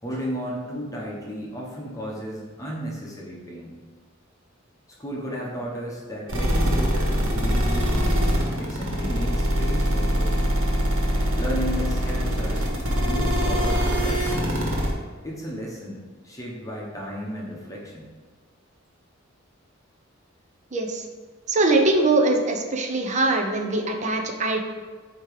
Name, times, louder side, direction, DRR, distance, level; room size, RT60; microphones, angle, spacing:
voice 1, 0.0-3.7 5.0-8.2 8.6-10.3 11.4-12.7 13.0-14.6 15.2-18.1, equal, 15° left, -3 dB, 1.0 m, -34 dB
sound 1, 6.3-14.9, equal, 80° right, 1.5 m, -23 dB
voice 2, 20.7-21.0 21.5-24.6, right 2 dB, 35° right, 3 dB, 0.7 m, -22 dB
8.6 x 3.0 x 4.9 m, 1.5 s
head